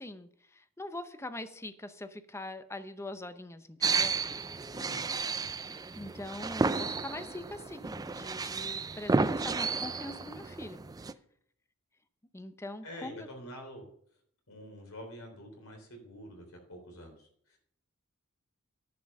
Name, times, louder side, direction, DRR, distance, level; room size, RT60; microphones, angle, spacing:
voice 1, 0.0-4.2 5.7-10.8 12.3-13.3, left 2 dB, 10° left, 11 dB, 0.7 m, -43 dB
sound 1, 3.8-11.1, right 4 dB, 15° right, 0.4 m, -32 dB
voice 2, 4.7-5.0 12.8-13.8 14.5-17.6, equal, 70° left, 2 dB, 3.4 m, -47 dB
10.5 x 5.5 x 6.4 m, 0.65 s
head